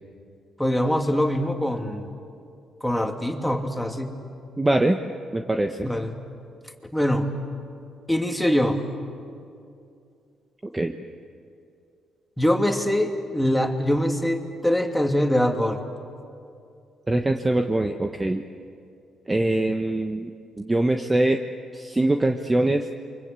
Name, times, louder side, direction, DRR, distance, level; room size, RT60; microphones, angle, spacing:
voice 1, 0.6-2.1 2.8-4.2 5.8-6.1 6.9-7.3 8.1-8.8 12.4-15.8, equal, 5° left, 3 dB, 2.8 m, -23 dB
voice 2, 4.6-5.0 5.3-5.9 10.7-10.9 17.1-18.4 19.3-20.3 20.6-21.4 21.7-22.8, right 1 dB, 20° right, 5 dB, 1.2 m, -23 dB
29.0 x 24.5 x 8.3 m, 2.5 s
cardioid pair, 85°, 0 cm